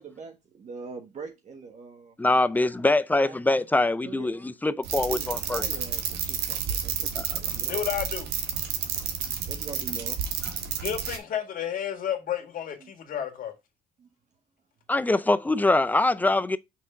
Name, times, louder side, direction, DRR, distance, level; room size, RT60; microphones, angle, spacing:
voice 1, 0.0-2.2 2.7-3.4 3.7-4.3 5.1-7.8 9.3-10.5 12.8-12.9 14.0-14.1, right 5 dB, 45° right, 1.3 m, -43 dB
voice 2, 2.2-5.6 7.2-7.3 14.9-16.6, left 2 dB, 10° left, 0.4 m, -23 dB
sound 1, 4.8-11.2, right 7 dB, 80° right, 1.5 m, -31 dB
voice 3, 7.7-8.3 10.8-13.5, left 9 dB, 55° left, 1.9 m, -31 dB
5.7 x 3.7 x 5.5 m
cardioid pair, 110°, 17 cm